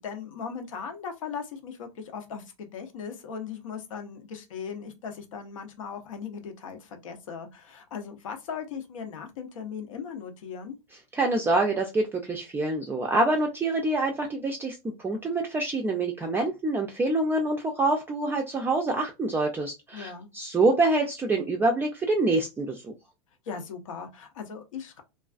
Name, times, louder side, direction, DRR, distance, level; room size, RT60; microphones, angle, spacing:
voice 1, 0.0-10.7 19.9-20.3 23.5-25.0, left 6 dB, 85° left, 0.7 m, -38 dB
voice 2, 11.1-22.9, right 2 dB, 15° right, 0.3 m, -26 dB
2.3 x 2.3 x 2.3 m
hypercardioid pair, 115°, 16 cm